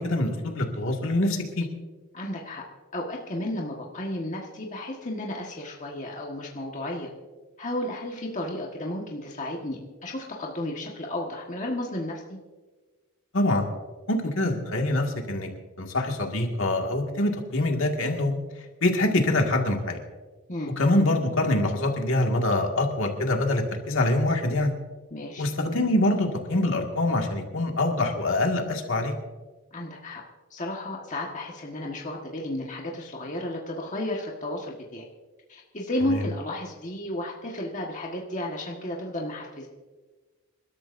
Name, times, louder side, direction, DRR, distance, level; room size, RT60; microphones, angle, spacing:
voice 1, 0.0-1.7 13.3-13.7 14.1-15.5 15.8-18.3 18.8-20.0 20.8-24.7 25.4-29.1 36.1-36.2, left 1 dB, 60° left, 2 dB, 2.0 m, -24 dB
voice 2, 2.1-2.6 2.9-7.1 7.6-12.4 20.5-20.7 25.1-25.4 29.7-30.2 30.5-35.1 35.5-39.7, left 1 dB, 35° left, -1 dB, 1.5 m, -33 dB
27.5 x 13.0 x 2.6 m, 1.3 s
head